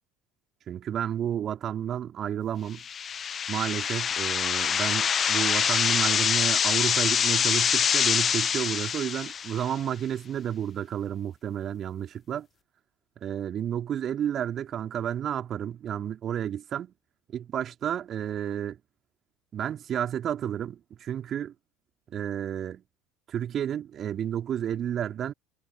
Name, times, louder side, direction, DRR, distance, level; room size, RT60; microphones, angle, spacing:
voice 1, 0.7-2.8 3.5-12.5 13.2-16.9 17.3-18.8 19.5-21.5 22.1-22.8 23.3-25.3, right 10 dB, 40° right, 3.6 m, -31 dB
sound 1, 2.8-9.7, left 7 dB, 35° left, 0.7 m, -25 dB
figure-of-eight pair, 65°, 0 cm